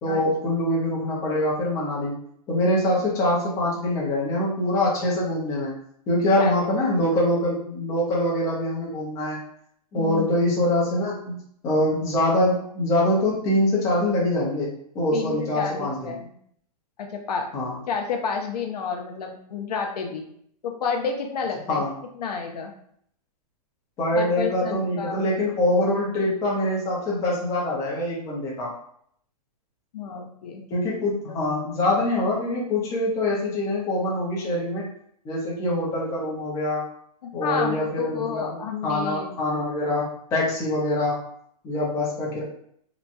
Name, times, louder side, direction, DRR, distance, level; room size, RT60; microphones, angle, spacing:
voice 1, 0.0-2.2 2.5-5.7 6.1-9.4 9.9-16.1 17.5-17.8 21.7-21.9 24.0-28.7 30.7-34.9 35.2-36.9 37.3-41.2 41.6-42.4, left 1 dB, 15° left, -5 dB, 0.7 m, -24 dB
voice 2, 6.4-6.9 10.0-10.3 15.1-16.3 17.0-17.5 17.9-20.2 20.6-21.8 22.2-22.7 24.1-25.3 29.9-30.6 31.3-31.4 37.2-39.4, left 6 dB, 80° left, 3 dB, 0.6 m, -30 dB
2.9 x 2.2 x 2.6 m, 0.66 s
hypercardioid pair, 165°, 20 cm